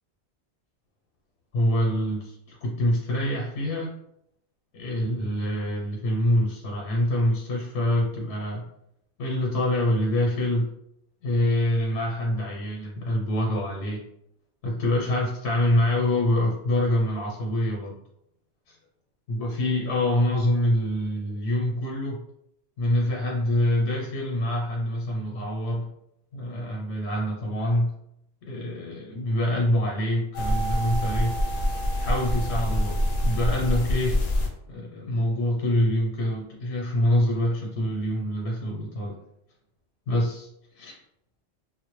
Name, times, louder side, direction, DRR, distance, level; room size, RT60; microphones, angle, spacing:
voice 1, 1.5-3.9 4.7-8.6 9.2-10.7 11.2-14.0 14.6-18.0 18.7-18.8 19.3-22.2 22.8-25.9 26.3-27.9 28.4-31.3 32.0-34.2 34.7-39.2 40.1-40.5 40.8-41.0, left 1 dB, 85° left, -2 dB, 0.9 m, -25 dB
sound 1, 30.3-34.5, equal, 60° left, 0.6 m, -25 dB
2.1 x 2.0 x 2.9 m, 0.76 s
omnidirectional pair, 1.1 m